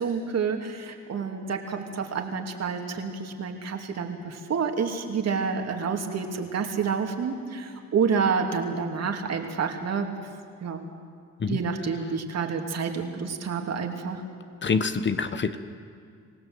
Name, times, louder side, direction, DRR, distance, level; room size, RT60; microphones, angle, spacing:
voice 1, 0.0-10.3 10.6-10.8 11.5-14.2, right 5 dB, 60° right, 4 dB, 2.6 m, -29 dB
voice 2, 14.6-15.6, left 5 dB, 40° left, 11 dB, 1.2 m, -26 dB
26.5 x 16.5 x 7.9 m, 2.2 s
cardioid pair, 90°, 30 cm